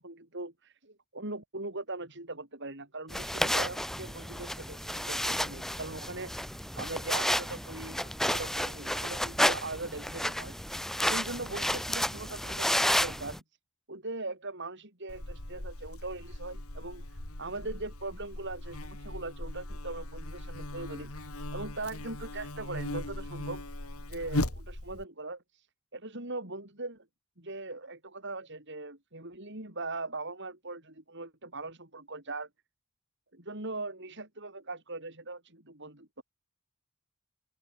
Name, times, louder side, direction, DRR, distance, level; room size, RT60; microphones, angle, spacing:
voice 1, 0.0-6.5 6.8-10.5 11.1-13.4 13.9-17.0 17.4-23.6 24.1-25.7 25.9-27.0 27.4-32.5 33.3-36.2, right 2 dB, 55° right, 6.3 m, -40 dB
sound 1, 3.1-13.4, equal, ahead, 2.9 m, -31 dB
Buzz, 15.1-25.0, left 1 dB, 75° left, 3.3 m, -38 dB
open air
head